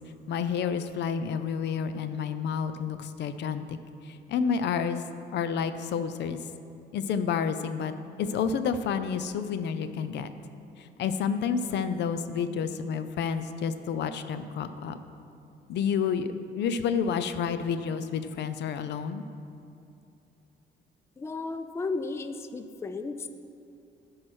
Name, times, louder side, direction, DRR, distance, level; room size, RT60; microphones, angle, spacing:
voice 1, 0.3-3.8 4.1-5.0 5.3-6.4 6.9-7.9 8.2-10.3 10.8-15.0 15.7-19.2, left 6 dB, 70° left, 11 dB, 0.5 m, -29 dB
voice 2, 21.2-23.3, left 3 dB, 15° left, 9 dB, 0.4 m, -34 dB
11.5 x 4.7 x 6.3 m, 2.7 s
cardioid pair, 130°, 18 cm